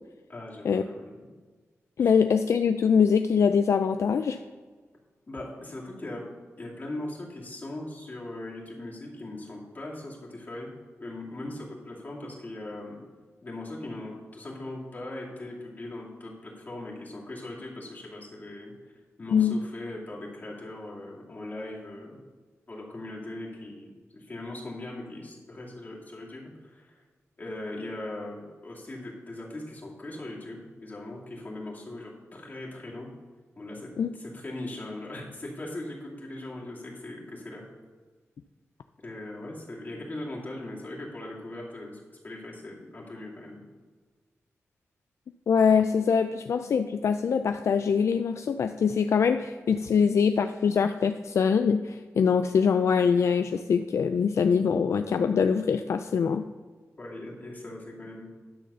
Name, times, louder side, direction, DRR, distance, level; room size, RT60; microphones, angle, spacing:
voice 1, 0.3-1.1 2.0-2.1 5.3-6.2 6.6-10.7 11.0-13.0 13.4-18.7 19.2-22.2 22.7-27.0 27.4-33.1 33.6-37.6 39.0-43.6 57.0-58.3, left 1 dB, 35° left, -4 dB, 2.4 m, -39 dB
voice 2, 2.0-4.4 19.3-19.6 34.0-34.1 45.5-56.4, left 6 dB, 70° left, 8 dB, 0.3 m, -23 dB
10.5 x 4.0 x 6.8 m, 1.4 s
wide cardioid pair, 110°, 5 cm